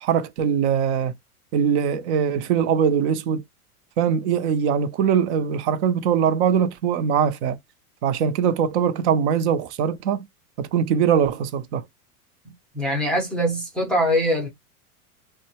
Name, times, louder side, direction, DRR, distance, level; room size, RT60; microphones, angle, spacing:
voice 1, 0.0-1.1 1.5-3.4 4.0-7.6 8.0-10.2 10.6-11.8, right 8 dB, 50° right, 0.5 m, -22 dB
voice 2, 12.4-14.5, equal, ahead, 0.5 m, -23 dB
2.1 x 2.1 x 2.7 m
hypercardioid pair, 130°, 45 cm